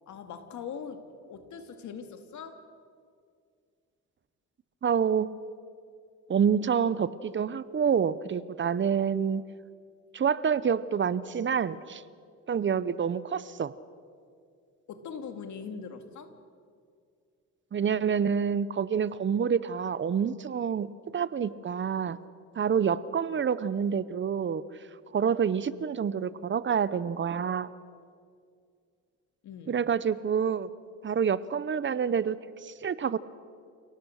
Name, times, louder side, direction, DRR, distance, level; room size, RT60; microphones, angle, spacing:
voice 1, 0.1-2.7 14.9-16.3 29.4-29.8, left 6 dB, 70° left, 7 dB, 2.1 m, -41 dB
voice 2, 4.8-5.3 6.3-9.4 10.1-12.0 12.5-13.7 17.7-22.2 22.5-24.6 25.1-27.7 29.7-30.7 31.0-33.2, right 7 dB, 40° right, 17 dB, 0.8 m, -27 dB
28.5 x 18.0 x 6.5 m, 2.2 s
cardioid pair, 90°, 30 cm